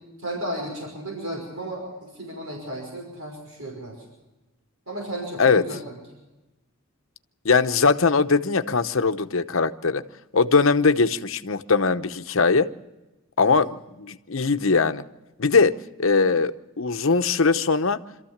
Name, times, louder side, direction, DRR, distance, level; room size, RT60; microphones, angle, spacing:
voice 1, 0.2-4.0 4.9-5.9 13.4-13.6, right 1 dB, 85° right, 0 dB, 5.5 m, -34 dB
voice 2, 7.4-10.0 10.3-12.7 13.4-13.7 14.0-15.0 15.4-15.7 16.0-18.0, left 4 dB, 70° left, 9 dB, 0.9 m, -20 dB
26.0 x 14.0 x 7.2 m, 1.1 s
head